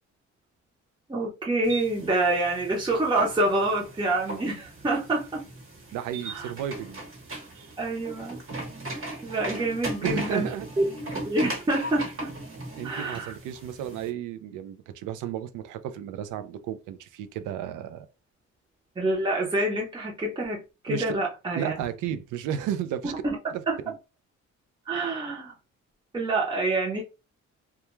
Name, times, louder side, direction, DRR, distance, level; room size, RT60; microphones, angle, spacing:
voice 1, 1.1-5.4 6.2-6.5 7.8-8.4 9.2-10.5 10.8-10.9 11.3-12.3 12.8-13.3 19.0-21.7 23.0-23.4 23.7-23.8 24.9-25.5 26.1-27.0, right 2 dB, 15° right, 0.7 m, -27 dB
sound 1, 1.6-14.1, right 2 dB, 45° right, 1.2 m, -38 dB
voice 2, 5.9-7.0 7.5-7.7 10.0-10.7 12.8-18.1 20.9-21.1 21.5-23.1 23.5-23.9, right 9 dB, 90° right, 0.5 m, -33 dB
2.3 x 2.2 x 3.0 m
cardioid pair, 90°, 30 cm